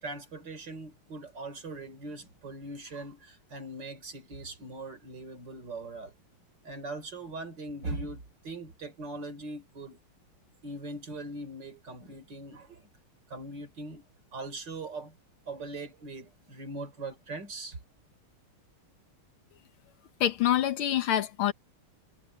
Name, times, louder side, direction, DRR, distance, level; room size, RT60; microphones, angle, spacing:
voice 1, 0.0-6.1 6.6-10.0 10.6-12.9 13.3-14.0 14.3-15.2 15.5-17.8, right 2 dB, 50° right, 4.2 m, -40 dB
voice 2, 20.2-21.5, left 11 dB, 75° left, 1.9 m, -26 dB
omnidirectional pair, 2.4 m